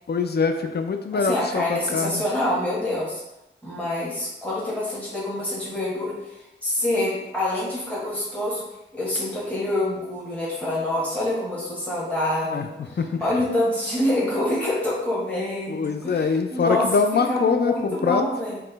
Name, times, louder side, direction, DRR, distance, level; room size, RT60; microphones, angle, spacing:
voice 1, 0.1-2.2 12.5-12.7 13.0-13.2 15.7-18.2, left 5 dB, 55° left, 6 dB, 0.4 m, -23 dB
voice 2, 1.1-3.2 3.6-8.6 8.9-18.6, left 1 dB, 5° left, -7 dB, 1.2 m, -26 dB
4.1 x 2.2 x 3.9 m, 0.92 s
wide cardioid pair, 55°, 20 cm